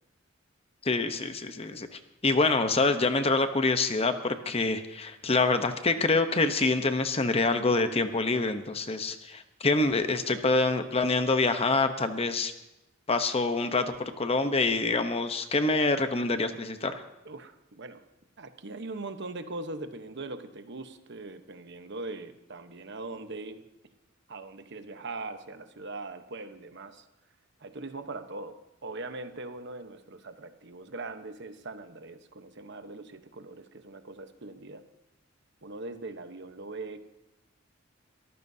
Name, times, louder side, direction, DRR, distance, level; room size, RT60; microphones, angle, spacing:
voice 1, 0.8-12.5 13.1-17.0, left 3 dB, 30° left, 8 dB, 0.9 m, -26 dB
voice 2, 17.2-18.0 18.4-23.6 24.3-27.0 27.6-28.6 28.8-34.9 35.6-37.0, right 3 dB, 60° right, 8 dB, 1.1 m, -41 dB
23.0 x 14.5 x 2.8 m, 0.94 s
head